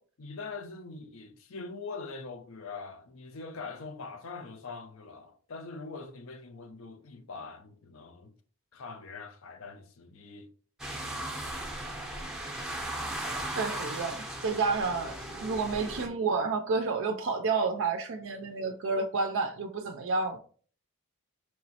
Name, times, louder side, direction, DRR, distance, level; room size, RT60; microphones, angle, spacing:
voice 1, 0.2-8.4 8.7-10.5 11.0-11.6, left 4 dB, 65° left, 0.5 m, -43 dB
sound 1, 10.8-16.1, right 1 dB, ahead, 0.6 m, -37 dB
voice 2, 13.5-20.4, right 4 dB, 55° right, 0.4 m, -30 dB
4.7 x 3.0 x 2.8 m
head